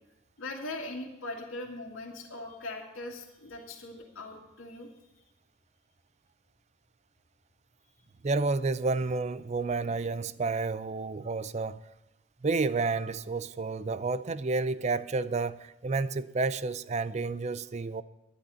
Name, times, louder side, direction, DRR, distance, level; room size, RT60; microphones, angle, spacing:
voice 1, 0.4-4.9, left 2 dB, 80° left, 2.1 m, -40 dB
voice 2, 8.2-11.8 12.4-18.0, right 3 dB, 35° right, 0.4 m, -30 dB
12.0 x 10.0 x 5.6 m
head